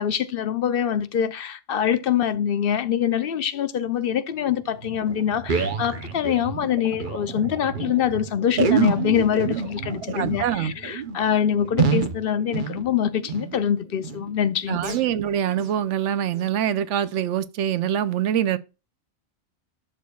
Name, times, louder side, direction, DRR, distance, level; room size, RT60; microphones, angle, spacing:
voice 1, 0.0-15.0, left 9 dB, 60° left, 0.7 m, -24 dB
sound 1, 4.3-12.0, right 6 dB, 65° right, 1.3 m, -38 dB
sound 2, 4.7-4.8 5.1-7.2 7.5-7.6 7.7-7.9 8.5-13.6 14.0-14.3 14.8-15.1 15.5-15.8 16.3-16.4 17.1-17.2, right 5 dB, 45° right, 0.9 m, -27 dB
voice 2, 10.1-10.7 14.7-18.6, right 10 dB, 85° right, 1.0 m, -24 dB
11.0 x 6.8 x 2.3 m
omnidirectional pair, 1.2 m